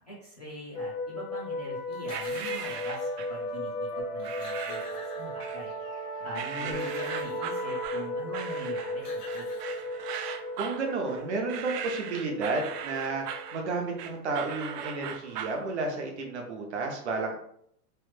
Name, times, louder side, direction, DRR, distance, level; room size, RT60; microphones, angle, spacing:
voice 1, 0.0-5.7 6.2-9.5, equal, 30° left, -9 dB, 0.4 m, -43 dB
sound 1, 0.7-16.1, left 1 dB, 55° left, 0.8 m, -36 dB
sound 2, 1.9-3.2 3.9-4.0 4.2-5.8 6.4-7.6 8.6-8.7 8.9-10.2, left 3 dB, 90° left, 1.2 m, -46 dB
sound 3, 2.1-3.4 4.2-5.0 5.4-6.0 6.3-15.6, right 8 dB, 90° right, 0.6 m, -39 dB
voice 2, 6.3-6.9 10.6-17.4, right 3 dB, 45° right, 1 dB, 0.6 m, -32 dB
3.1 x 2.1 x 3.1 m, 0.70 s
supercardioid pair, 175°, 47 cm